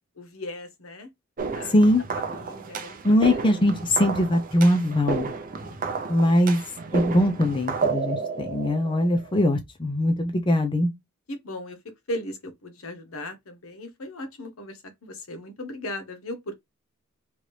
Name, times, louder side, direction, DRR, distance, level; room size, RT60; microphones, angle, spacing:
voice 1, 0.2-1.1 1.5-1.7 2.3-3.0 3.3-3.4 5.6-6.1 11.3-11.8 12.1-16.5, left 1 dB, 70° left, 0.9 m, -37 dB
sound 1, 1.4-9.5, right 4 dB, 40° right, 0.6 m, -32 dB
voice 2, 1.6-2.0 3.0-5.3 6.1-6.6 6.9-10.9, left 1 dB, 25° left, 0.5 m, -21 dB
3.0 x 2.5 x 3.1 m
head